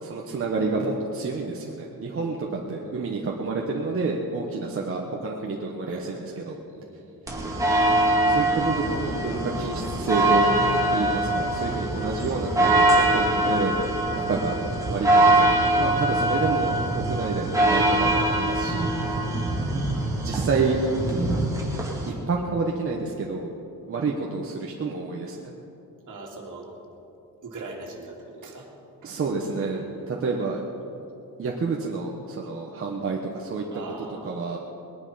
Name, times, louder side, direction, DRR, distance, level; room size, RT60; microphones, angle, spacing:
voice 1, 0.0-6.6 8.3-10.5 10.9-13.7 14.1-14.5 14.9-18.9 20.2-21.4 22.3-23.5 23.8-25.4 29.0-30.6 31.4-33.6 34.2-34.6, right 4 dB, 40° right, -1 dB, 1.1 m, -29 dB
voice 2, 2.1-3.1 5.9-6.5 6.7-7.5 19.1-19.7 26.1-26.7 27.4-28.7 29.0-29.2 29.5-30.9 33.7-34.5, right 2 dB, 60° right, 0 dB, 2.6 m, -43 dB
sound 1, 7.3-22.1, right 1 dB, 10° right, 2.2 m, -23 dB
20.5 x 11.0 x 5.6 m, 2.8 s
wide cardioid pair, 180°, 36 cm